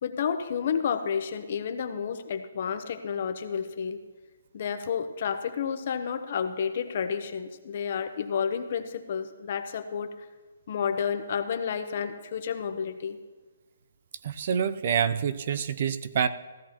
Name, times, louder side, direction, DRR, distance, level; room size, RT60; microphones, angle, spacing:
voice 1, 0.0-4.0 4.5-10.1 10.7-13.2, left 7 dB, 45° left, 9 dB, 0.8 m, -30 dB
voice 2, 14.2-16.3, right 7 dB, 40° right, 13 dB, 0.5 m, -27 dB
16.0 x 13.5 x 2.9 m, 1.3 s
hypercardioid pair, 165°, 0 cm